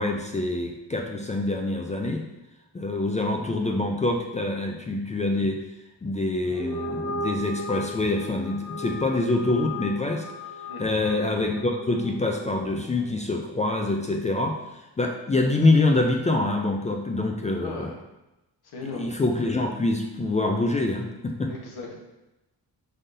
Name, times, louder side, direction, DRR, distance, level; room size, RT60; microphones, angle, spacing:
voice 1, 0.0-2.3 2.7-5.6 6.0-10.3 10.8-17.9 18.9-21.5, left 2 dB, 20° left, 2 dB, 0.3 m, -25 dB
sound 1, 6.4-13.0, left 1 dB, 50° left, 1.4 m, -36 dB
voice 2, 17.6-17.9 18.6-19.1 21.5-22.0, left 3 dB, 75° left, -1 dB, 1.2 m, -37 dB
5.0 x 3.9 x 2.6 m, 0.98 s
wide cardioid pair, 130°, 38 cm